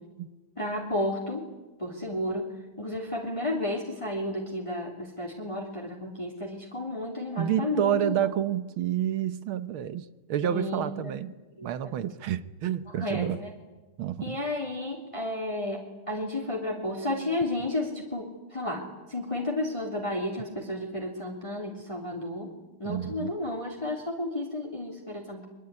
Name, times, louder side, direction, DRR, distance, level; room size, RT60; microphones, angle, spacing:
voice 1, 0.6-1.4 1.8-2.5 2.8-8.2 10.4-10.9 11.6-11.9 13.0-13.5 14.2-15.8 16.1-18.8 19.1-22.5 22.8-25.5, left 1 dB, 15° left, -1 dB, 3.2 m, -32 dB
voice 2, 7.4-11.3 11.6-13.4 14.0-14.4 22.8-23.3, right 10 dB, 80° right, 13 dB, 1.9 m, -29 dB
23.5 x 22.0 x 9.7 m, 1.2 s
omnidirectional pair, 2.2 m